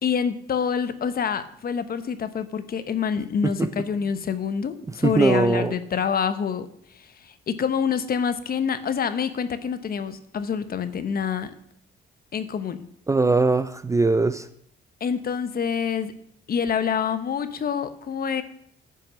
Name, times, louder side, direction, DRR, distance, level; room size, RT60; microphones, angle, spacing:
voice 1, 0.0-11.5 12.3-12.9 15.0-16.1 16.5-18.4, left 7 dB, 50° left, 0.9 m, -27 dB
voice 2, 5.0-5.7 13.1-14.5, right 3 dB, 15° right, 0.4 m, -21 dB
9.8 x 5.9 x 6.2 m
cardioid pair, 90°, 20 cm